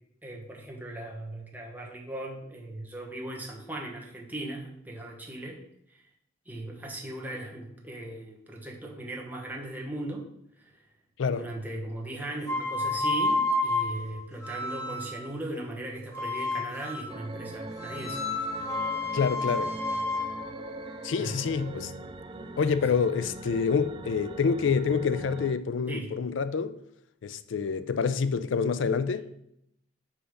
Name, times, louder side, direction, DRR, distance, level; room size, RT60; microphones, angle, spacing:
voice 1, 0.2-5.6 5.9-6.0 6.5-10.3 10.6-10.7 11.3-18.2 18.5-18.7 21.2-21.4 25.9-26.1, right 1 dB, 10° right, 1.0 m, -38 dB
sound 1, 12.4-15.3 16.1-17.2 17.8-21.8, left 2 dB, 15° left, 1.6 m, -31 dB
sound 2, 17.1-25.5, right 2 dB, 25° right, 0.3 m, -41 dB
voice 2, 19.1-19.7 21.0-21.9 22.6-26.7 27.2-29.2, left 5 dB, 80° left, 0.4 m, -27 dB
5.1 x 4.9 x 5.1 m
head